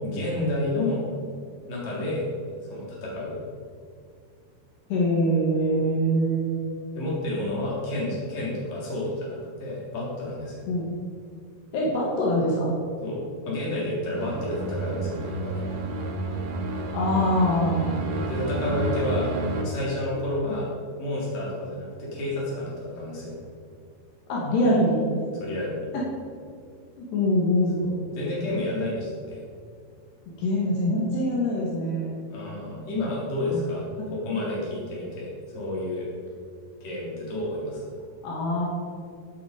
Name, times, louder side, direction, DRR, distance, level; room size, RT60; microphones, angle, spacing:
voice 1, 0.0-1.0 1.7-2.2 2.6-3.4 6.9-10.6 13.0-13.2 13.4-15.6 18.3-19.3 19.6-20.7 21.0-23.3 25.3-25.9 27.8-29.4 32.3-36.1 36.8-37.9, left 1 dB, 40° left, -5 dB, 4.7 m, -30 dB
voice 2, 4.9-6.6 10.7-10.9 11.7-12.7 16.9-18.0 24.3-25.2 25.9-26.0 27.0-27.9 30.4-32.1 33.5-33.6 34.3-34.4 38.2-38.7, equal, 70° left, -4 dB, 4.2 m, -24 dB
sound 1, 14.1-19.6, right 2 dB, 55° right, 2.4 m, -30 dB
16.0 x 8.5 x 5.3 m, 2.2 s
omnidirectional pair, 4.9 m